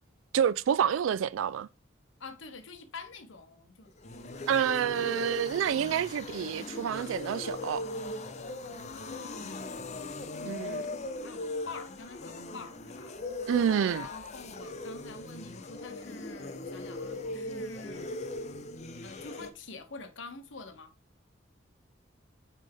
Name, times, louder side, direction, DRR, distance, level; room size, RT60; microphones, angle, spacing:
voice 1, 0.3-1.7 4.4-7.8 10.4-10.9 13.5-14.1, right 8 dB, 90° right, 0.3 m, -28 dB
voice 2, 2.2-5.4 8.9-13.2 13.9-18.1 19.0-20.9, left 4 dB, 75° left, 1.1 m, -47 dB
sound 1, 3.9-19.5, left 2 dB, 35° left, 0.7 m, -39 dB
8.9 x 3.5 x 3.7 m
head